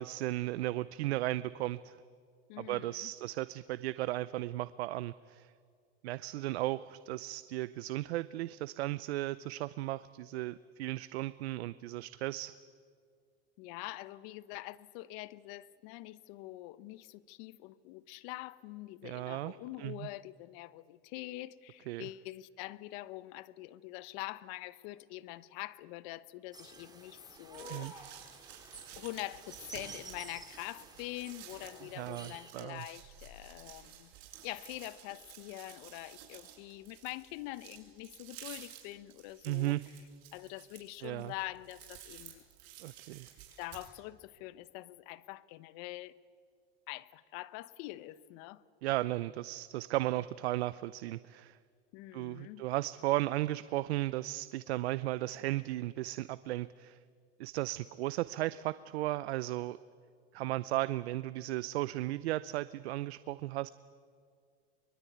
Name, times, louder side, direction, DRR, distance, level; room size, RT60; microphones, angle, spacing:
voice 1, 0.0-2.0 2.6-5.5 6.0-12.5 19.0-20.1 21.9-22.1 27.7-27.9 32.0-32.8 39.4-39.8 41.0-41.3 42.8-43.3 48.8-51.6 52.1-57.0 57.4-59.8 60.3-63.7, right 16 dB, 80° right, 16 dB, 0.6 m, -35 dB
voice 2, 2.5-3.1 13.6-28.2 29.0-34.1 34.4-39.8 40.3-42.4 43.6-46.1 46.9-48.6 51.9-52.6, left 18 dB, 65° left, 17 dB, 1.0 m, -45 dB
sound 1, 26.5-32.5, right 3 dB, 10° right, 3.2 m, -51 dB
sound 2, 27.3-43.9, right 10 dB, 60° right, 7.0 m, -53 dB
23.5 x 22.0 x 9.4 m, 2.1 s
supercardioid pair, 105°, 31 cm